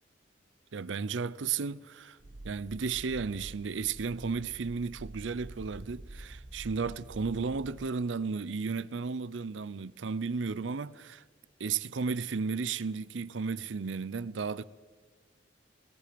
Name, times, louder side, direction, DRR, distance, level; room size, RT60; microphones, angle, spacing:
voice 1, 0.7-2.2 2.4-11.2 11.6-14.6, right 5 dB, 80° right, 0.6 m, -34 dB
sound 1, 2.2-7.7, right 1 dB, 45° right, 0.9 m, -47 dB
23.0 x 22.0 x 5.1 m
head